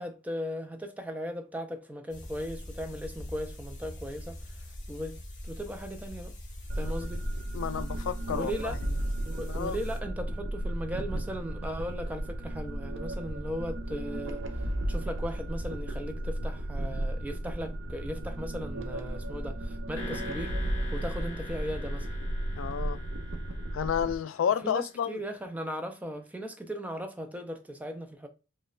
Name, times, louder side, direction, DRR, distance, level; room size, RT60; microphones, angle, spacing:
voice 1, 0.0-6.3 6.8-7.2 8.3-8.8 9.2-20.5 20.9-22.1 24.6-28.3, equal, 5° right, 0.4 m, -37 dB
sound 1, 2.1-10.0, left 1 dB, 35° left, 1.0 m, -43 dB
sound 2, 6.7-24.2, right 1 dB, 65° right, 0.5 m, -34 dB
voice 2, 7.5-8.7 9.5-9.8 22.6-23.0 23.7-25.2, left 8 dB, 75° left, 0.3 m, -31 dB
sound 3, 20.0-24.9, left 3 dB, 10° left, 1.2 m, -45 dB
5.0 x 2.2 x 2.3 m
head